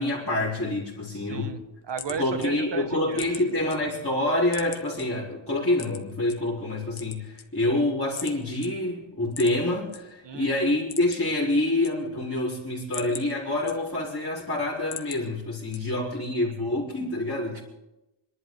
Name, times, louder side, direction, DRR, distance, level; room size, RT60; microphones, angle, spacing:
voice 1, 0.0-1.5 2.2-17.6, left 1 dB, 25° left, -7 dB, 4.3 m, -27 dB
voice 2, 1.1-3.2 10.2-10.6 15.7-16.2 17.5-17.6, right 6 dB, 60° right, 10 dB, 1.4 m, -36 dB
sound 1, 1.5-3.8 4.1-5.0 5.7-6.4 6.8-7.8 8.2-8.3 8.6-8.7 9.3-10.0 10.3-10.4 10.7-11.4 11.6-12.3 12.7-14.2 14.6-15.2 15.7-16.1, left 7 dB, 70° left, 1.5 m, -40 dB
27.5 x 11.5 x 4.0 m, 0.95 s
cardioid pair, 65°, 48 cm